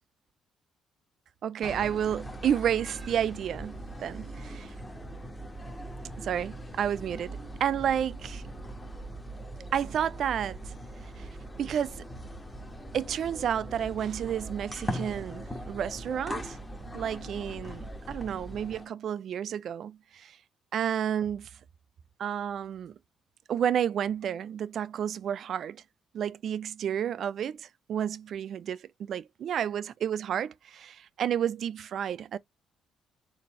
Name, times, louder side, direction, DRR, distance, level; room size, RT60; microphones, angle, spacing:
voice 1, 1.4-4.7 6.2-8.4 9.7-10.7 11.2-11.3 11.6-12.0 12.9-16.6 16.9-20.4 20.7-21.5 22.2-22.9 23.5-25.8 26.1-32.4, right 9 dB, 65° right, 0.4 m, -31 dB
sound 1, 1.6-18.8, right 1 dB, 10° left, 1.2 m, -40 dB
4.2 x 2.7 x 4.1 m
cardioid pair, 90°, 0 cm